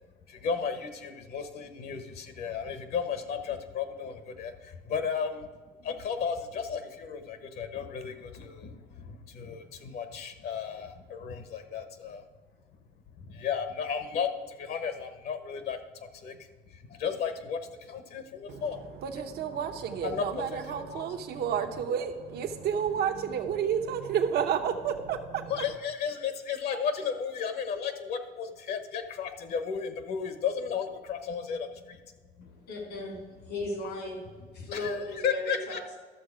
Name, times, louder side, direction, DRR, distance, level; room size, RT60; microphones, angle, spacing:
voice 1, 0.3-5.5 5.8-12.2 13.2-16.4 16.7-18.8 20.0-21.0 21.6-21.7 25.5-32.0 32.4-32.5 34.6-35.0 35.2-35.9, left 6 dB, 70° left, 8 dB, 1.2 m, -34 dB
voice 2, 19.0-25.5, right 8 dB, 70° right, 6 dB, 1.0 m, -30 dB
voice 3, 32.4-36.0, left 2 dB, 85° left, 0 dB, 3.7 m, -37 dB
12.5 x 6.6 x 4.9 m, 1.5 s
cardioid pair, 110°, 17 cm